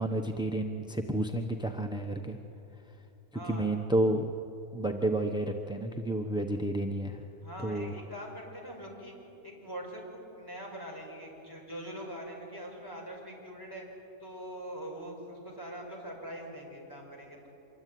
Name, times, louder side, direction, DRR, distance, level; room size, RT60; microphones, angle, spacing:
voice 1, 0.0-2.4 3.5-4.3 4.7-7.2 7.6-7.9, right 1 dB, 5° right, 5 dB, 0.7 m, -30 dB
voice 2, 3.3-3.7 7.4-9.2 9.4-13.8 14.2-17.5, equal, 15° left, -1 dB, 5.8 m, -43 dB
25.5 x 23.0 x 9.4 m, 2.9 s
omnidirectional pair, 1.7 m